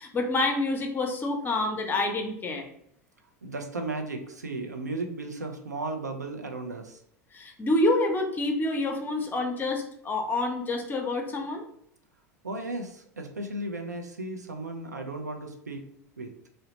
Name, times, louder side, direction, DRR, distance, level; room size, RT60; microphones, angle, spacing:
voice 1, 0.0-2.7 7.3-11.6, left 2 dB, 20° left, 3 dB, 0.6 m, -27 dB
voice 2, 3.4-7.0 12.4-15.8 16.2-16.3, right 2 dB, 85° right, 4 dB, 0.4 m, -35 dB
2.8 x 2.0 x 2.8 m, 0.70 s
figure-of-eight pair, 80°, 9 cm